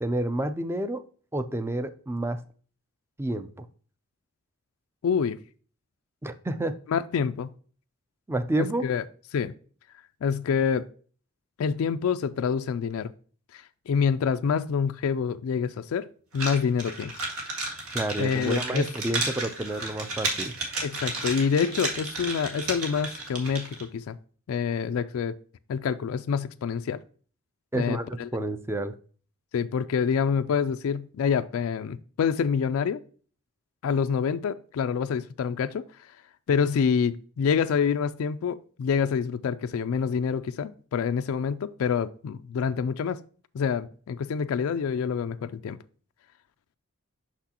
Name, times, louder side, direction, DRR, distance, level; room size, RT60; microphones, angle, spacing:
voice 1, 0.0-1.0 1.3-2.4 3.2-3.7 6.2-6.7 8.3-8.9 17.9-20.5 27.7-29.0, right 1 dB, 10° right, 0.4 m, -29 dB
voice 2, 5.0-5.4 6.9-7.5 8.6-9.0 9.3-9.5 10.2-10.9 11.6-13.1 13.5-16.1 16.3-17.1 18.2-18.9 20.8-24.2 24.5-25.4 25.7-27.0 27.7-28.3 29.5-33.0 33.8-35.8 36.5-43.2 43.5-45.8, left 6 dB, 75° left, 0.3 m, -27 dB
sound 1, 16.3-23.8, right 2 dB, 85° right, 1.8 m, -33 dB
6.0 x 6.0 x 2.8 m
head